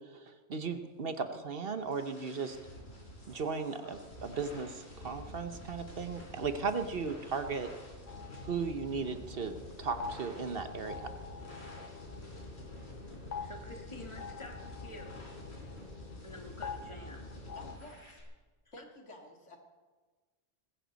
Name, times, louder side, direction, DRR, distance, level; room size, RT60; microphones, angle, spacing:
voice 1, 0.1-2.6 3.3-7.7 8.4-11.1, right 5 dB, 55° right, 8 dB, 1.1 m, -36 dB
sound 1, 1.2-18.2, equal, 65° left, 4.5 m, -49 dB
sound 2, 8.1-17.7, left 6 dB, 45° left, 0.8 m, -46 dB
voice 2, 13.4-15.2 16.2-17.3 18.6-18.7, left 2 dB, 25° left, 2 dB, 1.8 m, -48 dB
voice 3, 17.5-18.2 18.7-19.6, left 1 dB, 85° left, 2 dB, 2.5 m, -51 dB
20.0 x 15.5 x 4.1 m, 1.3 s
omnidirectional pair, 1.2 m